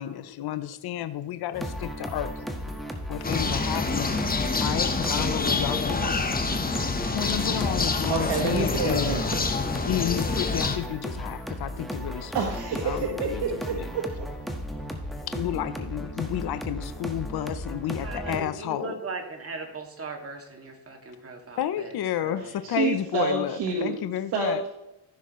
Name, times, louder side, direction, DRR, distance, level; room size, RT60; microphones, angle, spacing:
voice 1, 0.0-2.5 3.1-6.2 7.1-9.2 9.9-12.5 12.8-13.9 15.3-19.0 21.6-24.6, left 11 dB, 65° left, 12 dB, 0.7 m, -31 dB
sound 1, 1.5-18.4, equal, ahead, 1.4 m, -35 dB
sound 2, 3.2-10.8, left 4 dB, 20° left, 1.0 m, -27 dB
voice 2, 8.1-9.5 12.2-14.2 22.6-24.0 24.3-24.7, right 5 dB, 85° right, 0 dB, 1.5 m, -28 dB
voice 3, 18.0-22.5, right 3 dB, 35° right, 2 dB, 2.1 m, -38 dB
15.0 x 6.3 x 3.1 m, 0.93 s
cardioid pair, 95°, 41 cm